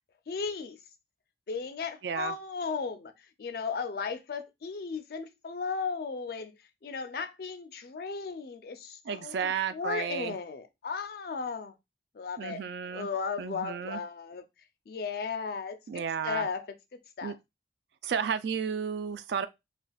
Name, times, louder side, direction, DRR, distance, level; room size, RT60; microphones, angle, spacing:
voice 1, 0.3-0.8 1.5-6.5 6.8-11.7 12.1-12.6 12.9-14.4 14.9-16.7 16.9-17.3, left 5 dB, 55° left, 0.4 m, -35 dB
voice 2, 2.0-2.3 9.0-10.4 12.4-13.1 13.4-14.0 15.9-16.5 17.2-17.3 18.0-19.5, right 7 dB, 65° right, 0.3 m, -32 dB
3.4 x 2.4 x 2.3 m
head